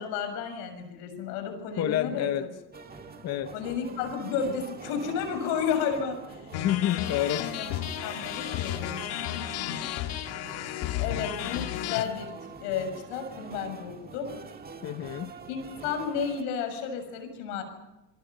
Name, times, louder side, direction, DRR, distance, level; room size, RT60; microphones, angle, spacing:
voice 1, 0.0-2.3 3.5-6.5 7.6-8.9 9.2-9.8 11.0-12.3 12.6-14.4 15.5-17.6, left 6 dB, 75° left, 6 dB, 6.9 m, -32 dB
voice 2, 1.8-2.4 3.2-3.5 6.6-7.5 14.8-15.3, left 12 dB, 35° left, 9 dB, 0.9 m, -28 dB
sound 1, 2.7-16.4, right 5 dB, 20° right, 1.8 m, -45 dB
sound 2, 6.5-12.0, left 12 dB, 55° left, 1.7 m, -33 dB
27.5 x 23.0 x 5.6 m, 0.96 s
supercardioid pair, 135°, 46 cm